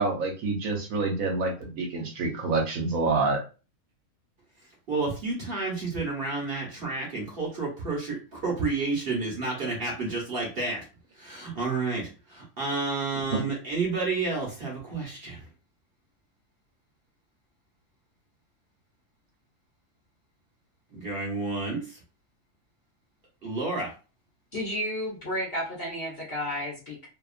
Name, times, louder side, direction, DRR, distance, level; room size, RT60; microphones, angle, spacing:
voice 1, 0.0-3.4, right 3 dB, 70° right, 0 dB, 1.2 m, -27 dB
voice 2, 4.9-10.8 11.2-15.4 20.9-21.8 23.4-23.9, right 3 dB, 45° right, -2 dB, 1.0 m, -30 dB
voice 3, 24.5-27.1, equal, 50° left, -3 dB, 0.9 m, -32 dB
2.8 x 2.3 x 2.4 m, 0.33 s
omnidirectional pair, 1.5 m